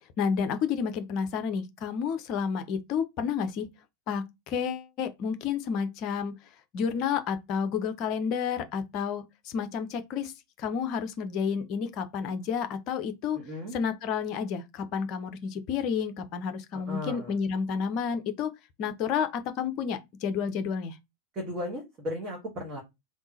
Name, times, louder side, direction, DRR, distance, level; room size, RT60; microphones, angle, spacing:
voice 1, 0.2-3.7 4.1-6.3 6.7-10.3 10.6-13.4 13.7-18.5 18.8-21.0, left 6 dB, 40° left, 0.6 m, -30 dB
voice 2, 13.3-13.8 16.7-17.3 21.3-22.8, left 1 dB, 25° right, 1.3 m, -36 dB
3.5 x 2.5 x 2.8 m
figure-of-eight pair, 90°, 0 cm